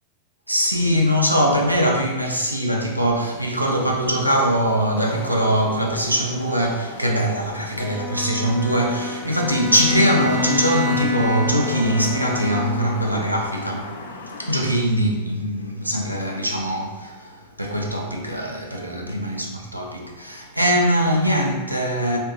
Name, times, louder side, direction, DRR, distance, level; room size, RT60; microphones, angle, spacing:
voice 1, 0.5-13.9 14.4-22.2, equal, 90° right, 0.4 m, -22 dB
Wind / Rain, 3.2-14.7, left 3 dB, 70° left, 0.4 m, -36 dB
Bowed string instrument, 7.8-13.0, left 4 dB, 20° right, 0.5 m, -27 dB
3.5 x 2.2 x 2.6 m
figure-of-eight pair, 90°, 0 cm